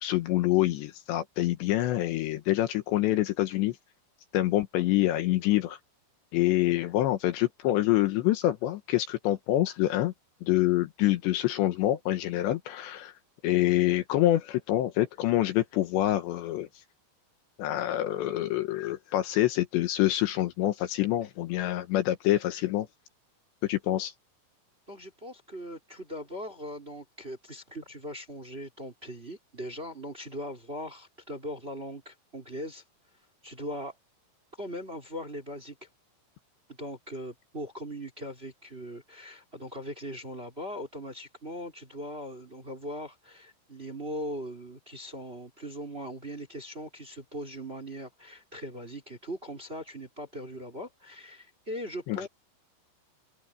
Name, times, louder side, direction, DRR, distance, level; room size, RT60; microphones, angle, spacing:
voice 1, 0.0-3.8 4.3-5.8 6.3-10.1 10.4-13.1 13.4-16.7 17.6-22.9 23.6-24.1 52.1-52.3, left 15 dB, 75° left, 3.1 m, -26 dB
voice 2, 24.9-32.8 33.4-33.9 34.6-35.9 36.7-52.3, equal, 15° right, 2.7 m, -40 dB
omnidirectional pair, 5.5 m